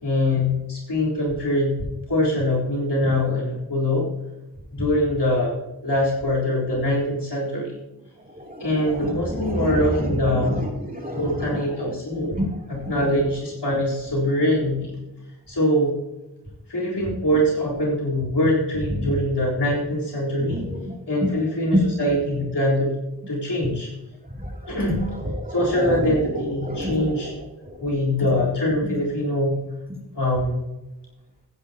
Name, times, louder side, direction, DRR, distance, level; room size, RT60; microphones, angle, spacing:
voice 1, 0.0-1.8 2.1-4.1 4.7-5.6 5.8-7.8 8.6-10.6 11.2-12.4 12.7-15.0 15.5-16.0 16.7-20.6 21.1-23.0 23.3-23.9 24.7-25.0 25.5-27.3 27.8-29.6 30.1-30.6, left 1 dB, 80° left, -5 dB, 4.0 m, -23 dB
voice 2, 8.2-11.8 12.2-12.6 12.8-12.9 19.0-19.1 20.4-21.3 21.7-21.8 24.3-24.8 25.2-27.4 27.6-27.8 28.8-28.9, equal, 20° right, -1 dB, 2.9 m, -29 dB
15.0 x 9.8 x 2.9 m, 1.0 s
wide cardioid pair, 45°, 40 cm